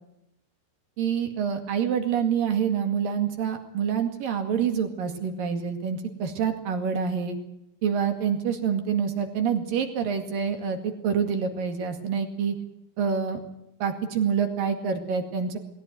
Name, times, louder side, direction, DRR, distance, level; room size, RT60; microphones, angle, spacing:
voice 1, 1.0-7.4 7.8-12.6 13.0-13.4 13.8-15.6, right 7 dB, 60° right, 5 dB, 3.7 m, -27 dB
20.5 x 17.0 x 9.4 m, 0.84 s
omnidirectional pair, 4.7 m